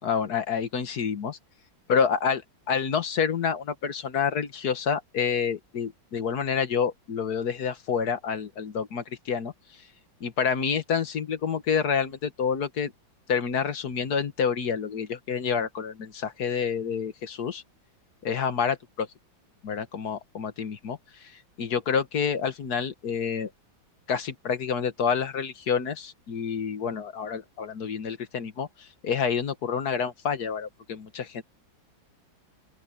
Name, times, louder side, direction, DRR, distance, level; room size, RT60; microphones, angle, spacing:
voice 1, 0.0-1.4 1.9-2.4 2.7-9.5 10.2-12.9 13.3-17.6 18.2-19.1 19.6-21.3 21.6-23.5 24.1-31.4, left 6 dB, 55° left, 1.7 m, -28 dB
open air
omnidirectional pair, 2.2 m